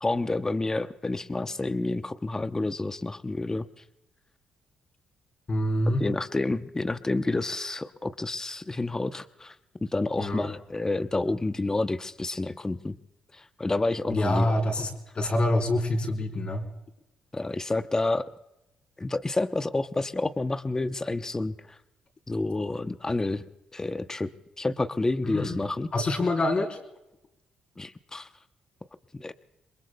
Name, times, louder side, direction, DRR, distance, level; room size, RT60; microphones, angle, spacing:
voice 1, 0.0-3.7 6.0-9.5 9.8-13.0 13.3-14.4 17.3-18.3 19.0-21.6 22.3-23.4 23.7-24.3 24.6-25.9 27.8-28.3 29.1-29.3, left 2 dB, 20° left, 10 dB, 0.8 m, -29 dB
voice 2, 5.5-6.1 10.2-10.5 14.1-14.9 15.1-16.7 25.2-25.6 25.9-26.8, left 1 dB, 40° left, 3 dB, 4.0 m, -26 dB
27.5 x 22.0 x 2.3 m, 0.91 s
supercardioid pair, 65°, 3 cm